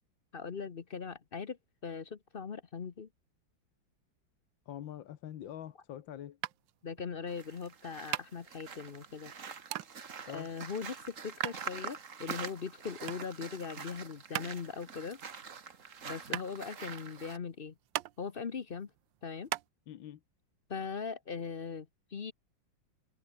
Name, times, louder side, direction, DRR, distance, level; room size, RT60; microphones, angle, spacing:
voice 1, 0.3-3.1 6.8-9.3 10.3-15.2 16.0-17.7 18.2-18.9 19.2-19.5 20.7-22.3, left 5 dB, 40° left, 0.8 m, -40 dB
voice 2, 4.7-6.4 10.3-10.5 19.9-20.2, left 11 dB, 80° left, 1.8 m, -44 dB
sound 1, 6.4-19.7, right 15 dB, 80° right, 1.4 m, -42 dB
sound 2, 7.3-17.4, right 6 dB, 45° right, 1.8 m, -45 dB
omnidirectional pair, 2.1 m